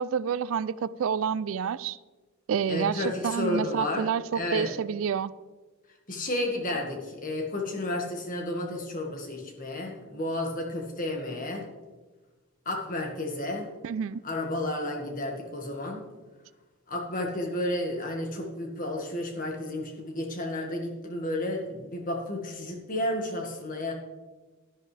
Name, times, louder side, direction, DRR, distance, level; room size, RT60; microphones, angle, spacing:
voice 1, 0.0-2.0 2.5-5.3 13.8-14.2, right 7 dB, 65° right, 0.3 m, -29 dB
voice 2, 2.7-4.1 4.3-4.7 6.1-11.6 12.6-13.7 14.2-16.0 16.9-23.9, left 1 dB, 35° left, 1.8 m, -32 dB
11.0 x 11.0 x 3.4 m
head